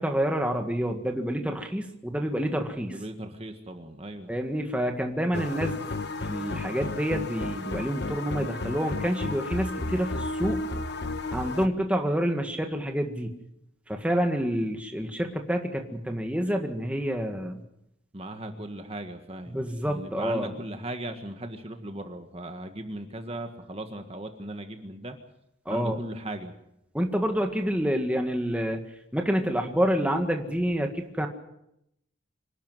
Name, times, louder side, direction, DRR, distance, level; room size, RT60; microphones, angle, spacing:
voice 1, 0.0-3.0 4.3-5.8 6.3-10.6 11.3-13.3 13.9-17.6 19.5-20.5 25.6-26.0 26.9-28.8 29.1-31.3, equal, 5° right, 3 dB, 1.7 m, -28 dB
voice 2, 2.9-4.3 18.1-25.2 25.7-26.5, right 1 dB, 30° right, 6 dB, 1.7 m, -38 dB
sound 1, 5.3-11.7, left 2 dB, 55° left, 1.1 m, -33 dB
26.0 x 12.0 x 9.4 m, 0.80 s
head